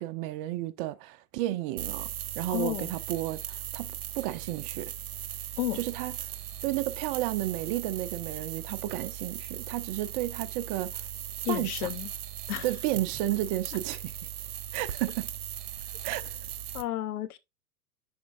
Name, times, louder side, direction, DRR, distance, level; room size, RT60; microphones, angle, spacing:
voice 1, 0.0-2.1 2.4-4.9 5.7-6.4 6.6-11.1 11.5-11.9 12.6-14.2 14.7-15.3 16.0-16.4, right 15 dB, 35° right, 0.4 m, -32 dB
sound 1, 1.8-16.8, right 11 dB, 80° right, 0.8 m, -38 dB
voice 2, 2.5-2.9 5.6-5.8 11.4-12.1 12.5-12.7 16.7-17.4, left 13 dB, 75° left, 0.9 m, -31 dB
10.5 x 4.3 x 2.5 m
hypercardioid pair, 100°, 45 cm